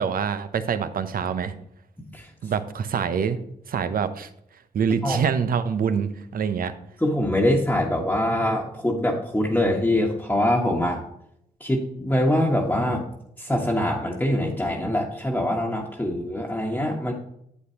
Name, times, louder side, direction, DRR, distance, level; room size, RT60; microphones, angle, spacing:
voice 1, 0.0-1.5 2.4-3.4 3.7-4.3 4.7-6.8, right 7 dB, 65° right, 11 dB, 0.8 m, -25 dB
voice 2, 7.0-11.0 11.6-13.0 13.4-17.1, left 1 dB, 10° left, -2 dB, 1.4 m, -23 dB
8.3 x 8.0 x 2.9 m, 0.74 s
supercardioid pair, 50°, 16 cm